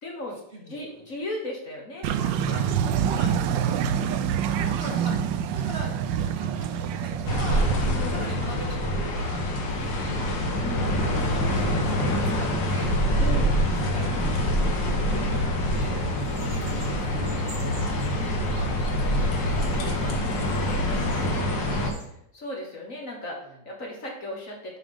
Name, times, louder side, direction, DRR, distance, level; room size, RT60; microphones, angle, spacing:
voice 1, 0.0-0.4 0.7-2.7 3.8-4.4 7.9-8.2 10.5-11.0 13.2-13.6 15.1-15.6 16.3-16.8 18.1-18.5 21.2-21.9 22.3-24.8, left 1 dB, 45° left, 0 dB, 1.5 m, -37 dB
sound 1, 2.0-7.9, right 8 dB, 75° right, 1.2 m, -26 dB
voice 2, 3.0-3.5 4.4-5.2 5.5-7.6 8.1-10.3 11.0-12.9 13.8-18.7 19.1-20.9 21.9-22.2 23.4-23.6, right 1 dB, 30° right, -2 dB, 2.0 m, -42 dB
sound 2, 7.3-21.9, equal, 70° left, 1.9 m, -25 dB
sound 3, 15.6-22.1, right 1 dB, 55° right, 2.0 m, -44 dB
7.7 x 4.8 x 5.2 m, 0.75 s
omnidirectional pair, 2.1 m